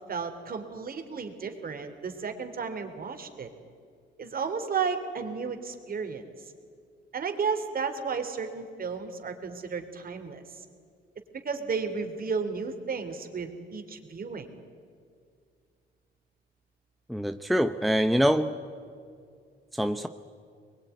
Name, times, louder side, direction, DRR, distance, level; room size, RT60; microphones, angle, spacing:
voice 1, 0.1-3.5 4.2-6.3 7.1-10.7 11.4-14.5, right 5 dB, 45° right, 7 dB, 3.5 m, -33 dB
voice 2, 17.1-18.5 19.7-20.1, equal, ahead, 9 dB, 0.9 m, -24 dB
24.5 x 22.0 x 9.5 m, 2.2 s
cardioid pair, 90°, 20 cm